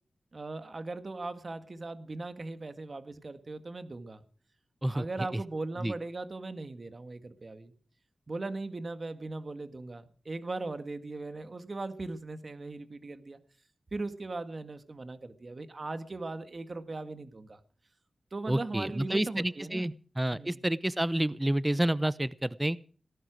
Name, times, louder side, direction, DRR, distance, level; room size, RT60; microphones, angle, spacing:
voice 1, 0.3-4.3 4.9-7.7 8.3-13.4 13.9-17.6 18.3-20.0 20.3-20.6, right 3 dB, 50° right, 10 dB, 1.9 m, -39 dB
voice 2, 4.8-5.4 5.8-5.9 18.5-22.8, right 1 dB, 15° right, 18 dB, 0.7 m, -29 dB
18.5 x 11.5 x 6.3 m, 0.42 s
cardioid pair, 45°, 0 cm